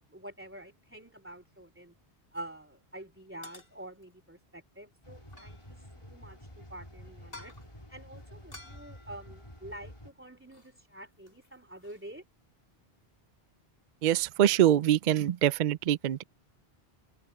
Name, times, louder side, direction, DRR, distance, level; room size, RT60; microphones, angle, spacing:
voice 1, 0.0-1.9 2.3-7.5 7.9-12.2, right 1 dB, 10° right, 3.1 m, -47 dB
sound 1, 2.3-2.6 3.4-4.1 5.2-6.0 7.2-7.8 8.5-10.0 10.5-10.8 11.0-12.1, left 2 dB, 70° left, 5.3 m, -53 dB
sound 2, 5.0-10.1, equal, 30° left, 3.9 m, -50 dB
voice 2, 14.0-16.2, right 11 dB, 55° right, 0.6 m, -24 dB
omnidirectional pair, 1.0 m